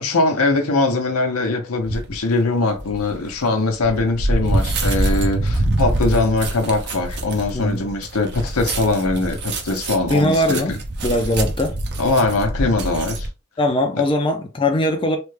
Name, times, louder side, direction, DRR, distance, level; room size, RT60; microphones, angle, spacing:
voice 1, 0.0-10.8 12.0-13.3 13.9-14.0, left 2 dB, 80° left, 0.8 m, -21 dB
sound 1, 1.8-2.2 2.7-13.3, right 1 dB, 50° right, 0.6 m, -25 dB
voice 2, 10.1-10.7 11.0-11.7 13.6-15.2, left 1 dB, 25° left, 0.4 m, -20 dB
3.3 x 2.2 x 3.2 m
head